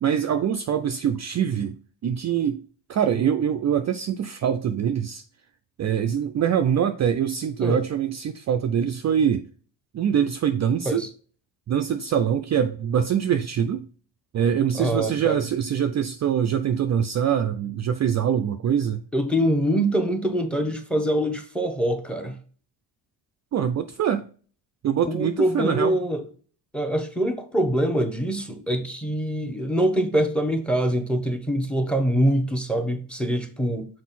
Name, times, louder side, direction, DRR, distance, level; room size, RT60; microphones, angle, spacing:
voice 1, 0.0-1.8 2.0-2.6 2.9-5.2 5.8-9.5 9.9-11.0 11.7-13.9 14.3-19.0 23.5-24.3 24.8-25.9, right 8 dB, 40° right, 0.4 m, -24 dB
voice 2, 14.8-15.4 19.1-22.4 25.0-26.2 26.7-33.9, right 1 dB, ahead, 0.9 m, -24 dB
6.3 x 4.6 x 4.1 m
cardioid pair, 135°, 44 cm